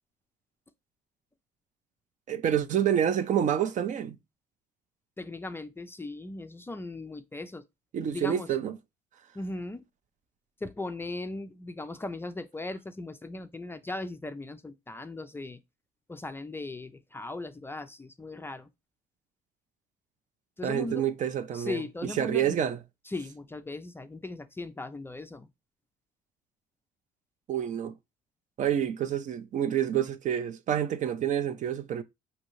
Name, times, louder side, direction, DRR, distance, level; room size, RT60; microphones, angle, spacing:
voice 1, 2.3-4.2 7.9-8.8 20.6-22.8 27.5-27.9 28.6-32.0, right 9 dB, 50° right, 0.4 m, -28 dB
voice 2, 5.2-7.6 8.1-8.5 9.3-9.8 10.6-15.6 16.1-18.7 20.6-21.0 21.5-22.6 23.1-25.5, left 2 dB, 15° left, 0.3 m, -38 dB
5.2 x 2.7 x 3.0 m
cardioid pair, 110°, 17 cm